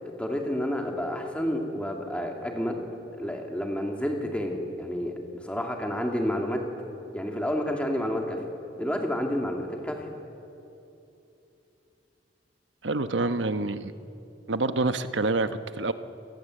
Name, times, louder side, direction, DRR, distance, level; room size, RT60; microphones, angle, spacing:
voice 1, 0.2-2.9 3.2-6.6 7.1-8.4 8.8-10.0, equal, 5° left, 2 dB, 2.6 m, -30 dB
voice 2, 12.8-13.9 14.5-15.9, right 3 dB, 85° right, 11 dB, 1.0 m, -27 dB
29.5 x 18.5 x 7.8 m, 2.9 s
head